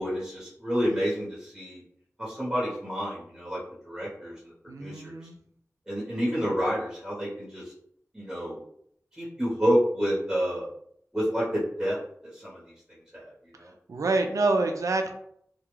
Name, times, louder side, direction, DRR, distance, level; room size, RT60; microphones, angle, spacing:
voice 1, 0.0-1.8 2.2-3.6 3.8-4.3 4.8-5.2 5.9-7.7 8.1-8.6 9.2-10.6 11.1-12.0 12.3-12.6 13.1-13.7, equal, 10° right, -7 dB, 1.1 m, -29 dB
voice 2, 4.7-5.4 13.9-15.1, right 3 dB, 90° right, 4 dB, 0.3 m, -26 dB
2.3 x 2.3 x 3.0 m, 0.68 s
wide cardioid pair, 75°, 5 cm